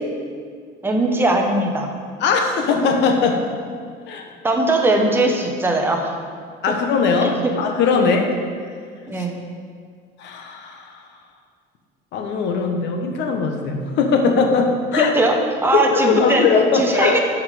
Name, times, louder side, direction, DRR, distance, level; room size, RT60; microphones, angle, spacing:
voice 1, 0.8-1.9 4.4-6.2 6.7-6.8 7.4-7.7 7.9-8.1 9.1-9.4 15.0-16.4 16.7-17.2, right 2 dB, 10° right, 2 dB, 0.9 m, -20 dB
voice 2, 2.2-3.4 4.1-4.3 6.6-8.2 9.1-9.2 10.2-11.0 12.1-15.1 15.7-17.2, left 5 dB, 60° left, 3 dB, 1.2 m, -20 dB
11.5 x 5.7 x 5.0 m, 2.1 s
cardioid pair, 165°, 21 cm